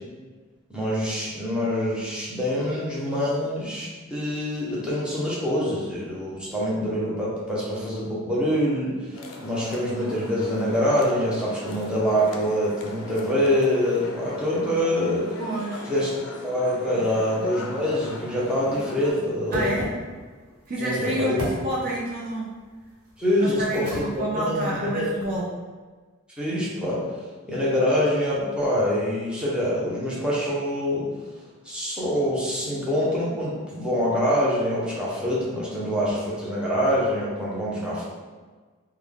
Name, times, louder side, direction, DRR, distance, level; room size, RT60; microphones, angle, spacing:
voice 1, 0.7-15.4 15.9-19.7 20.8-21.4 23.2-24.1 24.3-25.1 26.4-27.1 27.5-31.1 31.6-38.0, equal, 5° right, -8 dB, 0.7 m, -25 dB
sound 1, 9.1-19.1, left 2 dB, 65° left, 0.4 m, -40 dB
voice 2, 15.4-15.9 19.5-19.9 20.7-21.4 21.6-22.5 23.4-25.5 37.8-38.0, right 1 dB, 40° right, -4 dB, 0.5 m, -29 dB
sound 2, 17.7-25.4, equal, 85° right, 1.0 m, -39 dB
3.3 x 2.2 x 3.5 m, 1.4 s
head